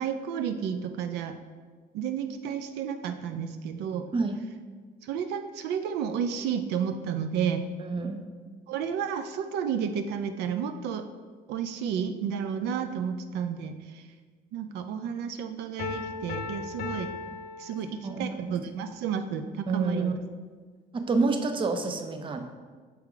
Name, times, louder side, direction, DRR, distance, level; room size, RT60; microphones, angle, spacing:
voice 1, 0.0-1.3 1.9-4.1 5.0-7.7 8.7-11.1 11.5-14.1 14.5-17.1 17.6-20.1, right 7 dB, 80° right, 9 dB, 0.4 m, -31 dB
voice 2, 7.8-8.2 18.0-18.4 19.7-20.1 20.9-22.5, right 3 dB, 30° right, 7 dB, 0.6 m, -28 dB
Piano, 15.8-18.4, left 5 dB, 65° left, 0.8 m, -37 dB
6.0 x 4.4 x 3.7 m, 1.5 s
cardioid pair, 110°, 17 cm